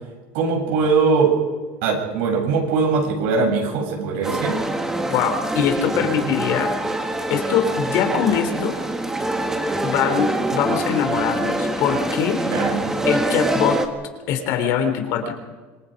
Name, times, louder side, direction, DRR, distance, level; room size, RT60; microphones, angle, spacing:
voice 1, 0.3-1.4 1.8-4.6 6.2-6.3 12.4-13.0, right 4 dB, 75° right, 1 dB, 7.7 m, -21 dB
sound 1, 4.2-13.9, right 1 dB, 10° right, 1.8 m, -25 dB
voice 2, 5.1-6.7 7.3-8.8 9.8-12.6 13.0-13.8 14.3-15.3, left 8 dB, 60° left, 5 dB, 3.5 m, -22 dB
26.5 x 21.5 x 5.3 m, 1.4 s
cardioid pair, 150°, 6 cm